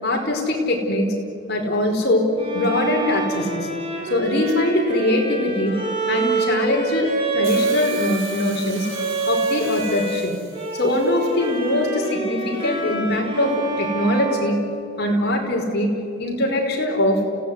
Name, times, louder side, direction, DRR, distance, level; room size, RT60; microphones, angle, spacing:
voice 1, 0.0-1.1 1.5-2.3 2.5-3.7 4.1-5.8 6.1-8.9 9.3-10.3 10.7-14.6 15.0-15.9 16.2-17.2, left 1 dB, 55° left, 1 dB, 4.9 m, -22 dB
Bowed string instrument, 2.4-10.2 10.5-15.3, right 3 dB, 25° right, 5.5 m, -27 dB
Hiss, 7.4-11.6 12.6-12.7, right 4 dB, 80° right, 5.6 m, -39 dB
29.5 x 17.0 x 9.9 m, 2.5 s
head